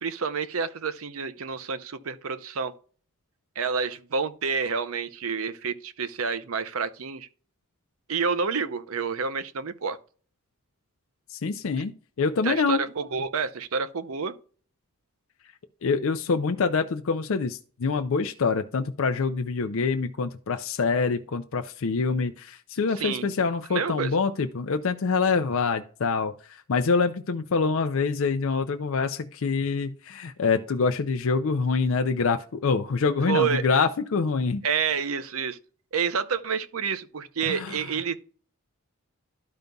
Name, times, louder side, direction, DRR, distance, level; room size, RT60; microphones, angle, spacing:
voice 1, 0.0-2.7 3.6-7.3 8.1-10.0 12.4-14.4 23.0-23.3 23.7-24.1 33.3-33.7 34.6-35.6 35.9-38.2, right 6 dB, 75° right, 0.6 m, -29 dB
voice 2, 11.3-11.9 12.2-12.8 15.8-34.6 37.5-37.8, left 4 dB, 65° left, 0.5 m, -25 dB
12.5 x 5.2 x 2.3 m
head